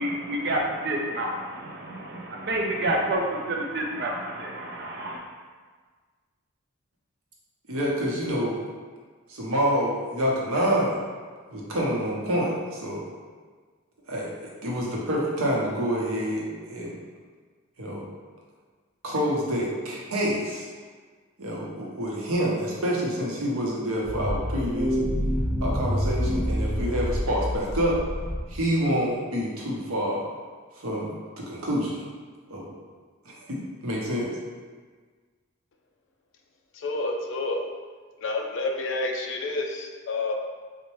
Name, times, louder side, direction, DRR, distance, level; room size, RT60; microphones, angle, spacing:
voice 1, 0.0-5.2, right 1 dB, 50° right, 0 dB, 0.5 m, -29 dB
voice 2, 7.7-8.5 9.3-11.0 11.5-13.0 14.1-14.3 14.6-16.9 17.8-18.0 19.0-20.7 21.4-25.0 25.6-27.9 28.5-30.2 30.8-31.1 31.5-32.0 32.5-32.7 33.5-34.3, equal, 90° right, -4 dB, 0.8 m, -27 dB
sound 1, 24.0-28.7, equal, ahead, 0.8 m, -27 dB
voice 3, 36.7-37.6 38.2-40.3, left 2 dB, 60° left, 2 dB, 0.4 m, -29 dB
4.0 x 2.1 x 3.1 m, 1.5 s
head